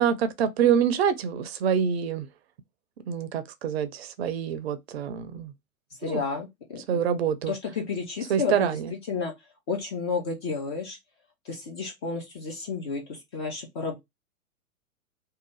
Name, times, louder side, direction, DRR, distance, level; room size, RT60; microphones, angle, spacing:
voice 1, 0.0-2.3 3.1-5.5 6.0-6.2 6.9-7.5 8.3-8.9, right 8 dB, 50° right, 0.5 m, -26 dB
voice 2, 6.0-7.0 7.5-9.3 9.7-11.0 11.4-14.0, left 5 dB, 20° left, 0.4 m, -32 dB
2.7 x 2.2 x 3.0 m
figure-of-eight pair, 105°, 42 cm